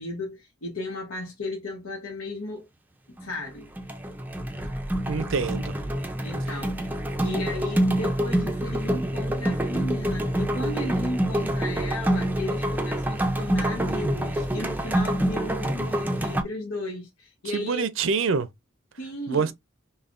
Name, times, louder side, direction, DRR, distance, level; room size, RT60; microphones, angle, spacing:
voice 1, 0.0-2.7 3.1-3.7 6.2-6.9 7.2-17.9 19.0-19.5, left 2 dB, 85° left, 1.0 m, -35 dB
sound 1, 3.2-3.5 3.8-16.4, right 1 dB, 10° right, 0.4 m, -26 dB
voice 2, 5.1-5.8 17.5-18.5 19.3-19.5, right 5 dB, 65° right, 0.5 m, -25 dB
5.5 x 2.2 x 2.5 m
head